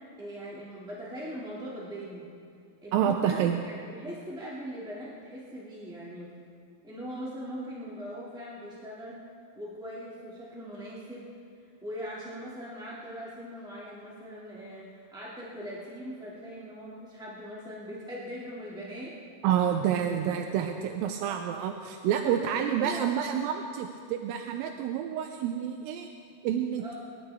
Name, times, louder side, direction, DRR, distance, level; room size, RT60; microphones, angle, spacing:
voice 1, 0.2-2.3 2.8-6.3 6.8-9.2 9.5-11.3 11.8-19.1 20.2-20.3 22.2-23.3 26.8-26.9, equal, ahead, -8 dB, 1.1 m, -40 dB
voice 2, 2.9-3.6 19.4-26.1 26.4-26.9, right 9 dB, 85° right, 5 dB, 2.3 m, -28 dB
25.0 x 12.0 x 3.5 m, 2.3 s
omnidirectional pair, 4.1 m